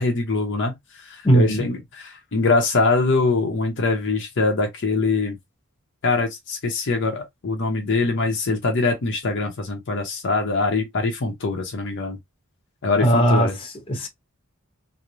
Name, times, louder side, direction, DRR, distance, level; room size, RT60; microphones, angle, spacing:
voice 1, 0.0-5.4 6.0-12.2 12.8-13.6, left 3 dB, 60° left, 0.7 m, -23 dB
voice 2, 1.2-1.6 13.0-14.1, right 1 dB, 25° left, 0.8 m, -19 dB
3.0 x 2.0 x 2.5 m
head